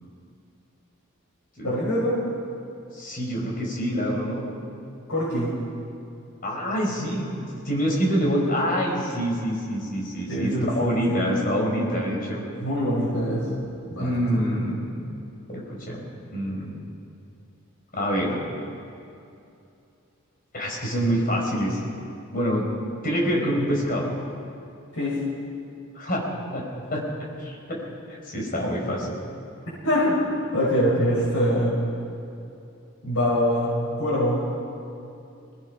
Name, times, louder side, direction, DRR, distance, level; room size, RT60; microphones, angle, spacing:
voice 1, 1.6-2.2 5.1-5.5 10.3-11.3 12.6-13.4 13.9-14.4 25.0-25.2 29.8-30.2 30.5-31.7 33.0-33.7 34.0-34.4, equal, 80° left, -9 dB, 6.5 m, -24 dB
voice 2, 2.9-4.5 6.4-12.4 14.0-14.9 15.5-16.0 16.3-16.7 17.9-18.4 20.5-21.8 22.3-22.7 23.0-24.1 25.9-26.3 26.5-26.6 26.9-27.0 27.4-29.1, equal, 40° left, -2 dB, 4.8 m, -26 dB
23.5 x 19.5 x 5.7 m, 2.6 s
head